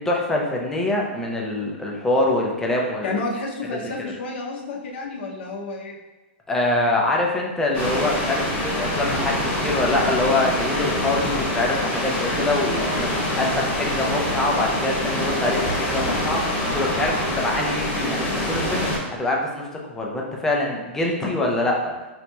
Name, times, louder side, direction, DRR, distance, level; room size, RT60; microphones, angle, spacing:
voice 1, 0.0-3.2 6.5-21.9, left 2 dB, 5° left, -1 dB, 0.4 m, -24 dB
voice 2, 3.0-6.0, left 3 dB, 65° left, 0 dB, 0.6 m, -30 dB
sound 1, 7.7-19.0, left 1 dB, 25° left, 1.0 m, -25 dB
3.9 x 2.9 x 2.2 m, 1.2 s
supercardioid pair, 160°, 6 cm